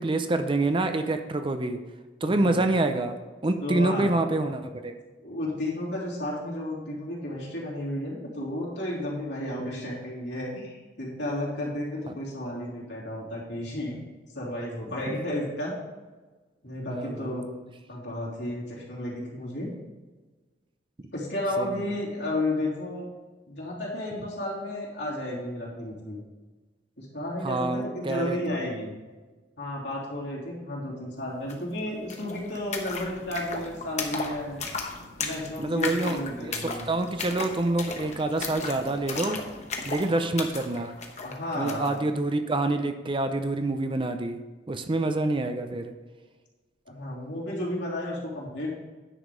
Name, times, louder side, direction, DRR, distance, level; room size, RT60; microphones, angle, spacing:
voice 1, 0.0-1.8 2.2-3.2 3.4-4.9 9.6-9.9 16.9-17.4 21.6-21.8 27.4-28.4 28.7-28.8 35.6-39.4 39.9-40.9 41.5-44.4 44.7-45.9, right 2 dB, 30° right, 8 dB, 0.6 m, -27 dB
voice 2, 3.6-4.1 5.2-14.0 14.3-15.7 16.6-17.4 17.9-19.7 21.1-23.1 23.5-26.2 27.0-28.9 29.6-34.6 35.2-36.9 41.2-41.9 46.9-48.7, left 1 dB, 70° left, -5 dB, 3.1 m, -32 dB
sound 1, 31.5-31.6 31.8-42.0, left 4 dB, 40° left, 1.1 m, -36 dB
9.9 x 5.1 x 5.3 m, 1.3 s
head